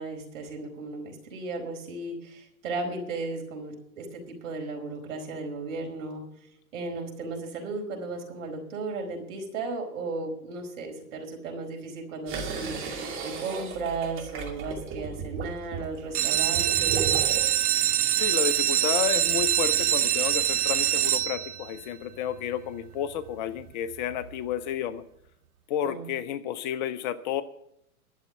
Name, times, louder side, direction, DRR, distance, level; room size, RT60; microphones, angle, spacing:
voice 1, 0.0-6.2 6.7-17.2 25.8-26.1, right 3 dB, 60° right, 2 dB, 4.7 m, -35 dB
sound 1, 12.3-17.6, right 5 dB, 25° right, 2.6 m, -35 dB
sound 2, 16.0-21.8 22.4-22.9 23.3-23.4 23.6-23.7 24.1-24.2, right 10 dB, 80° right, 0.6 m, -24 dB
voice 2, 18.2-25.0 25.7-27.4, left 10 dB, 30° left, 13 dB, 0.6 m, -31 dB
12.0 x 7.2 x 8.7 m, 0.76 s
hypercardioid pair, 115°, 44 cm